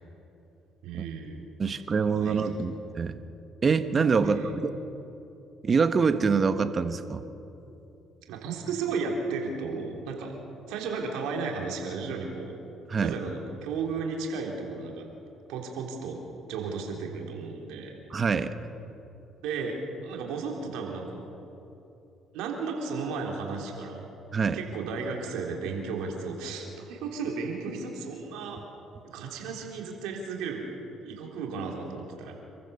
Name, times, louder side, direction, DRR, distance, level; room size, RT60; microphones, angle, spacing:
voice 1, 0.8-1.4 1.9-2.4 4.2-4.6 8.3-10.3 10.7-12.6 13.0-15.1 15.5-16.2 16.5-17.9 19.4-21.2 22.3-24.1 24.5-28.6 29.0-30.7 31.0-32.3, right 4 dB, 80° right, 1 dB, 3.7 m, -34 dB
voice 2, 1.6-3.2 3.6-4.7 5.6-7.2 12.9-13.1 18.1-18.5 24.3-24.6, right 5 dB, 40° right, 10 dB, 1.4 m, -25 dB
28.0 x 15.0 x 7.2 m, 3.0 s
supercardioid pair, 70°, 0 cm